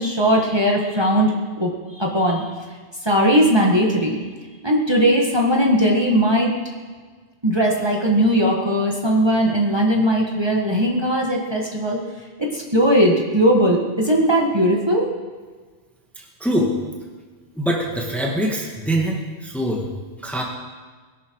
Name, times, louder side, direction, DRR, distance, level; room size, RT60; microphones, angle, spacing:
voice 1, 0.0-1.7 2.0-2.4 3.0-4.2 4.6-6.6 7.4-12.0 12.4-15.1, equal, 20° right, -2 dB, 1.9 m, -18 dB
voice 2, 16.4-16.7 17.6-19.9 20.2-20.4, equal, ahead, -1 dB, 1.8 m, -23 dB
21.5 x 11.5 x 4.8 m, 1.5 s
omnidirectional pair, 1.2 m